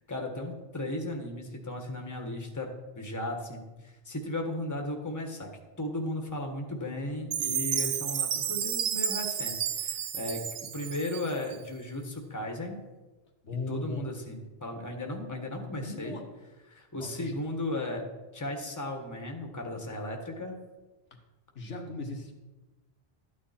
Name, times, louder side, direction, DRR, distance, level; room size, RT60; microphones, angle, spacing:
voice 1, 0.1-5.5 5.8-12.8 13.7-16.2 16.7-18.1 18.3-20.5, left 1 dB, 15° left, 3 dB, 1.4 m, -36 dB
Chime, 7.3-11.6, right 9 dB, 70° right, 0.9 m, -31 dB
voice 2, 13.4-14.1 15.8-16.2 17.0-17.4 21.6-22.3, left 3 dB, 85° left, 2 dB, 1.9 m, -37 dB
13.0 x 9.3 x 4.3 m, 1.1 s
omnidirectional pair, 1.2 m